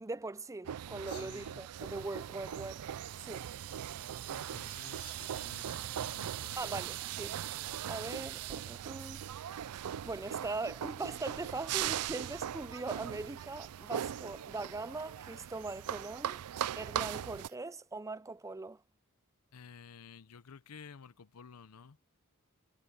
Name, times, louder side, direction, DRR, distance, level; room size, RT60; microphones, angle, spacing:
voice 1, 0.0-2.8 3.2-3.5 6.6-7.4 7.9-9.2 10.0-16.4 16.8-18.8, right 3 dB, 15° right, 0.5 m, -41 dB
sound 1, 0.6-17.5, right 10 dB, 90° right, 0.4 m, -40 dB
voice 2, 1.0-1.6 4.3-6.8 19.5-22.0, left 6 dB, 80° left, 0.7 m, -53 dB
sound 2, 1.7-17.6, right 12 dB, 70° right, 3.1 m, -62 dB
head